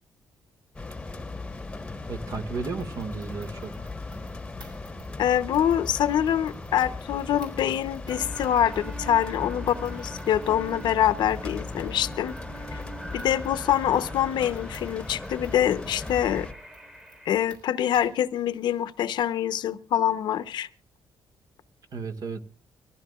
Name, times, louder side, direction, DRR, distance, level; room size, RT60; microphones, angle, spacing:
sound 1, 0.7-16.5, left 3 dB, 10° left, 1.2 m, -38 dB
voice 1, 2.1-3.9 21.9-22.5, right 4 dB, 55° right, 7 dB, 1.9 m, -34 dB
sound 2, 2.8-18.3, right 1 dB, 70° right, 5.9 m, -55 dB
voice 2, 5.2-12.3 12.7-12.8 13.1-16.5 17.3-20.7, left 10 dB, 75° left, 12 dB, 0.9 m, -25 dB
sound 3, 8.1-17.4, right 2 dB, 10° right, 1.7 m, -43 dB
23.5 x 15.5 x 2.4 m, 0.37 s
cardioid pair, 120°, 8 cm